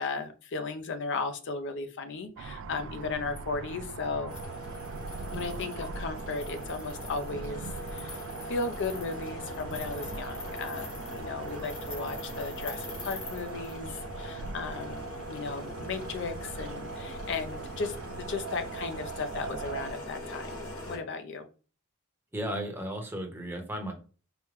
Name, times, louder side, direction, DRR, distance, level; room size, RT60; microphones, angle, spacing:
voice 1, 0.0-4.4 5.3-21.5, left 4 dB, 60° left, 9 dB, 0.5 m, -36 dB
sound 1, 2.4-19.9, right 5 dB, 65° right, 0.3 m, -41 dB
sound 2, 4.3-21.0, left 1 dB, 85° left, 1.5 m, -41 dB
voice 2, 22.3-23.9, right 1 dB, 10° right, 2 dB, 0.8 m, -34 dB
4.9 x 2.1 x 3.1 m, 0.37 s
head